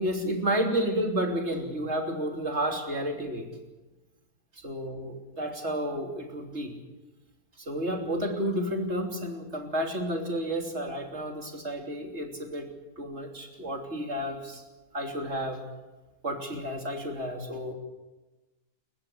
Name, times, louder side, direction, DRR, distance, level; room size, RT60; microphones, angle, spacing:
voice 1, 0.0-3.5 4.6-6.7 7.6-14.6 14.9-15.6 16.2-17.7, equal, 45° right, 3 dB, 3.5 m, -31 dB
29.5 x 15.0 x 8.0 m, 1.1 s
omnidirectional pair, 1.7 m